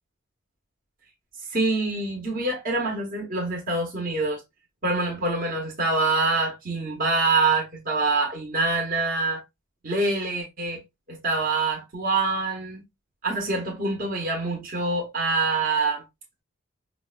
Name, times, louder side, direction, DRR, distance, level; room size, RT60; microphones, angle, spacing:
voice 1, 1.5-4.4 4.8-9.4 9.8-10.8 11.1-12.8 13.2-16.0, right 3 dB, 40° right, 0.8 m, -25 dB
4.5 x 2.1 x 2.3 m
head